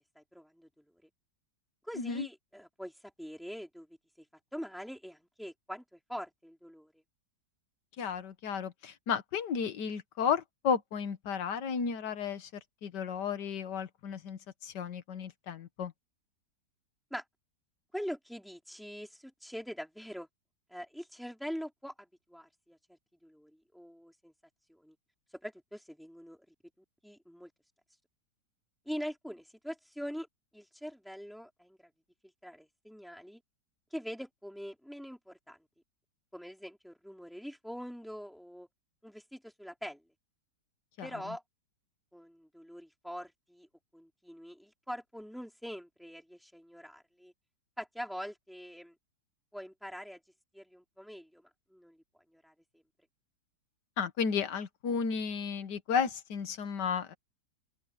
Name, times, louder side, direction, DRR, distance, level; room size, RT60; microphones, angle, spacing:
voice 1, 0.2-0.7 1.9-2.9 3.2-3.9 4.5-6.9 17.1-17.2 17.9-20.3 20.7-22.8 23.2-24.3 24.7-24.9 25.4-26.4 27.0-27.5 28.9-30.3 30.5-31.8 32.4-33.4 33.9-35.6 36.3-38.7 39.0-40.0 41.0-41.4 42.1-43.7 43.9-47.3 47.8-48.9 49.5-50.2 50.5-51.4 51.7-52.0 52.3-52.8, equal, ahead, 3.7 m, -43 dB
voice 2, 2.0-2.3 8.0-15.9 41.0-41.2 54.0-57.1, left 6 dB, 70° left, 1.9 m, -33 dB
omnidirectional pair, 1.9 m